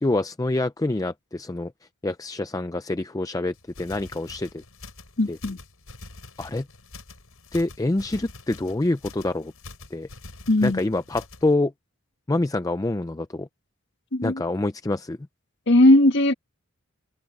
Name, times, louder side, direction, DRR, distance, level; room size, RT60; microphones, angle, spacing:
voice 1, 0.0-1.7 2.0-4.6 5.3-5.4 6.4-6.7 7.5-9.5 9.9-10.1 10.6-11.7 12.3-13.5 14.2-15.2, left 2 dB, 15° left, 0.4 m, -26 dB
sound 1, 3.5-11.5, left 3 dB, 80° left, 6.3 m, -45 dB
voice 2, 5.2-5.6 10.5-10.8 14.1-14.4 15.7-16.3, left 1 dB, 55° left, 1.5 m, -18 dB
head